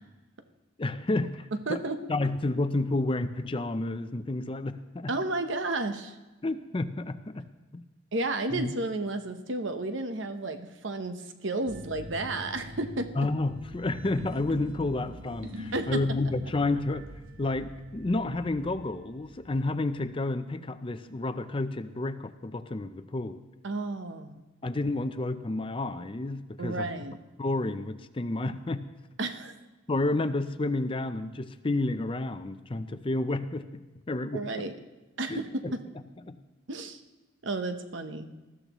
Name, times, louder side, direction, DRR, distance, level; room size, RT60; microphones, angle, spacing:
voice 1, 0.8-1.8 2.1-5.1 6.4-7.5 7.7-7.8 8.5-8.7 13.2-17.1 17.4-23.4 24.6-26.9 27.4-28.8 29.9-34.4 35.3-35.7 36.3-36.4, left 2 dB, 25° left, 11 dB, 0.5 m, -30 dB
voice 2, 1.7-2.1 5.1-6.1 8.1-13.3 15.7-16.0 23.6-24.4 26.6-27.1 29.2-29.5 34.3-34.7 35.2-35.8 36.7-37.0 37.4-38.3, right 2 dB, 70° right, 8 dB, 1.0 m, -32 dB
sound 1, 11.7-19.7, equal, 90° right, 1.1 m, -44 dB
20.0 x 13.5 x 3.0 m, 1.2 s
head